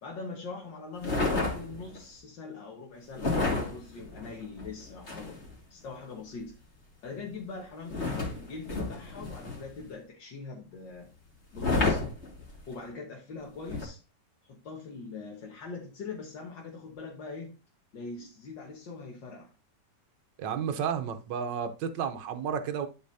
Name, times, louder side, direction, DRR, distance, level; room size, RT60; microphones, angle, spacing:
voice 1, 0.0-5.4 5.7-6.6 7.0-11.1 11.5-12.0 12.7-14.0 14.5-17.6 17.9-19.5, left 4 dB, 85° left, 2.0 m, -42 dB
sound 1, 1.0-2.0 3.2-5.5 7.9-9.8 11.5-12.7 13.7-13.9, left 3 dB, 35° left, 2.9 m, -31 dB
voice 2, 20.4-22.9, right 7 dB, 80° right, 1.5 m, -32 dB
11.5 x 5.1 x 2.7 m
omnidirectional pair, 1.9 m